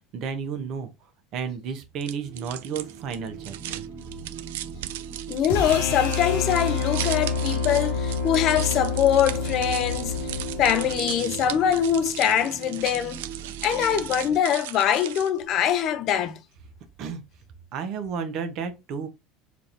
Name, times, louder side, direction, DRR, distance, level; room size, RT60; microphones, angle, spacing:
voice 1, 0.1-0.9 1.3-3.9 17.0-17.2 17.7-19.1, right 6 dB, 55° right, 0.9 m, -32 dB
sound 1, 2.0-15.4, right 13 dB, 75° right, 0.3 m, -37 dB
sound 2, 2.2-14.4, right 7 dB, 35° right, 1.4 m, -40 dB
voice 2, 5.3-13.2 13.6-16.4, left 9 dB, 55° left, 0.5 m, -23 dB
sound 3, 5.5-11.6, left 5 dB, 90° left, 1.2 m, -28 dB
4.5 x 2.7 x 2.6 m
hypercardioid pair, 85°, 0 cm